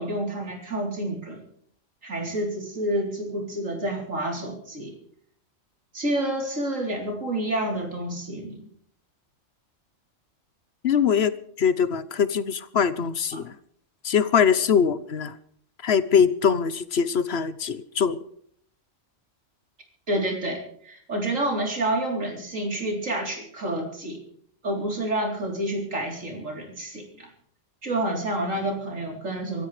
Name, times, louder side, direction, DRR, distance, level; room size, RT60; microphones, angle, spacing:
voice 1, 0.0-1.5 2.0-5.0 5.9-8.7 13.3-13.4 20.1-24.2 24.6-27.3 27.8-29.7, right 1 dB, 85° right, 1 dB, 4.2 m, -29 dB
voice 2, 10.8-13.5 14.0-15.4 15.8-18.2, left 7 dB, 55° left, 14 dB, 1.1 m, -22 dB
25.5 x 13.5 x 3.3 m, 0.64 s
omnidirectional pair, 1.3 m